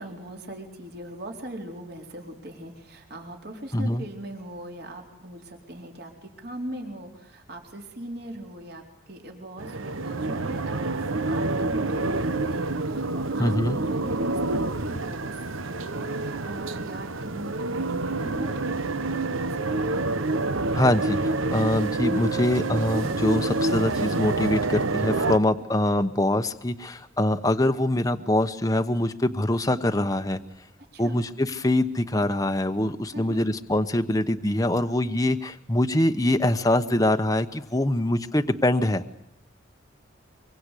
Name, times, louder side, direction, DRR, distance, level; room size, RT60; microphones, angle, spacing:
voice 1, 0.0-20.0 25.7-25.8 30.9-31.2 33.1-33.4, right 1 dB, 50° right, 2 dB, 4.1 m, -40 dB
voice 2, 3.7-4.0 13.4-13.8 20.7-30.4 31.0-39.0, left 1 dB, 15° left, 7 dB, 1.0 m, -24 dB
sound 1, 9.6-25.4, right 2 dB, 85° right, 1.1 m, -27 dB
25.0 x 23.5 x 8.3 m, 0.78 s
head